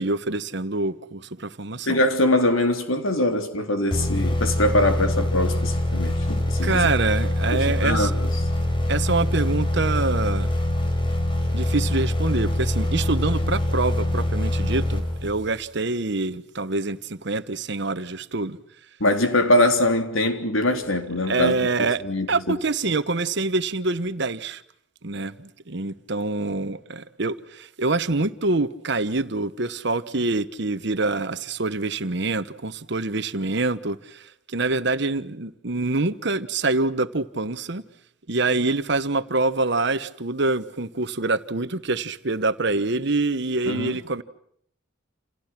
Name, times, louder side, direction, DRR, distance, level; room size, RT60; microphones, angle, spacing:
voice 1, 0.0-2.0 6.6-8.1 8.9-10.5 11.5-18.6 21.3-22.0 22.3-24.6 25.0-37.8 38.3-44.2, right 3 dB, 60° right, 1.2 m, -25 dB
voice 2, 1.9-6.9 7.5-8.5 19.0-22.6 43.7-44.0, left 1 dB, 85° left, 3.6 m, -23 dB
sound 1, 3.9-15.6, left 1 dB, 25° left, 4.4 m, -24 dB
29.0 x 28.5 x 6.0 m
head